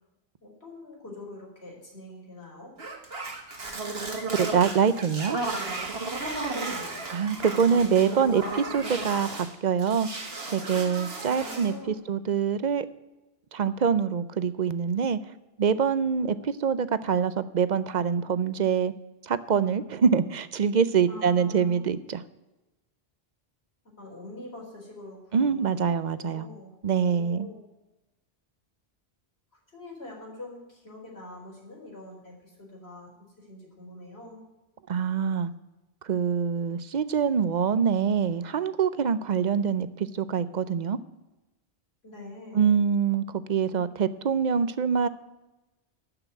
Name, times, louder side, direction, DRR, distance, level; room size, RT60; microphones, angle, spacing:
voice 1, 0.4-2.7 6.5-7.0 11.2-12.0 21.1-21.9 24.0-27.6 29.5-34.4 42.0-42.7, left 2 dB, 75° left, -2 dB, 4.1 m, -44 dB
sound 1, 2.8-9.5 9.8-11.8, right 3 dB, 70° right, 2.0 m, -34 dB
voice 2, 4.3-5.4 7.1-10.1 10.5-12.9 13.5-15.2 15.6-18.9 19.2-22.2 25.3-26.5 26.8-27.5 34.9-35.5 36.0-41.0 42.5-45.1, right 7 dB, 50° right, 15 dB, 0.7 m, -25 dB
12.5 x 5.9 x 9.1 m, 1.0 s
omnidirectional pair, 1.1 m